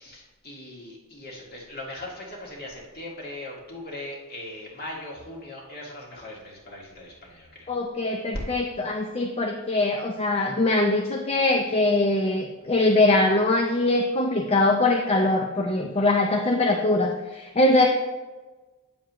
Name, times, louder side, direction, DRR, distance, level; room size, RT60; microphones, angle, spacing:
voice 1, 0.0-7.7, left 1 dB, 45° left, -3 dB, 1.9 m, -40 dB
voice 2, 7.7-17.9, left 2 dB, 30° left, 1 dB, 0.5 m, -22 dB
8.8 x 7.1 x 3.0 m, 1.2 s
head